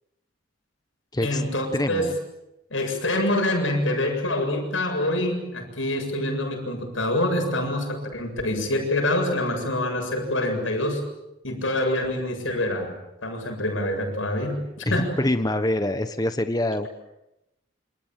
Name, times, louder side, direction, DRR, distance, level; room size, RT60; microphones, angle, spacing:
voice 1, 1.2-2.1 2.7-11.0 11.4-12.9 13.2-15.2, left 1 dB, 80° left, 4 dB, 7.7 m, -26 dB
voice 2, 1.7-2.1 14.9-16.9, left 1 dB, 20° left, 9 dB, 1.2 m, -25 dB
28.0 x 26.5 x 7.6 m, 0.91 s
head